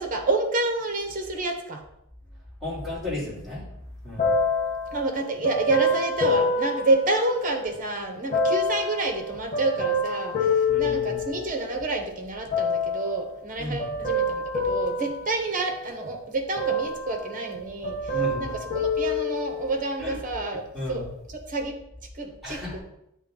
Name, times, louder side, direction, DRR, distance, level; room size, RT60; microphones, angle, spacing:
voice 1, 0.0-1.8 4.9-21.8 22.1-22.8, right 2 dB, 40° right, 4 dB, 0.9 m, -29 dB
voice 2, 2.6-3.6 4.0-4.3 10.7-11.2 13.6-13.8 18.1-18.6 20.0-20.2 20.7-21.1 22.4-22.8, left 2 dB, ahead, -8 dB, 2.4 m, -33 dB
sound 1, 4.2-7.8 8.3-11.8 12.5-13.2 13.8-16.1 16.6-17.6 17.8-19.9 20.5-20.6, left 2 dB, 35° left, 1.1 m, -27 dB
8.4 x 3.0 x 3.8 m, 0.80 s
head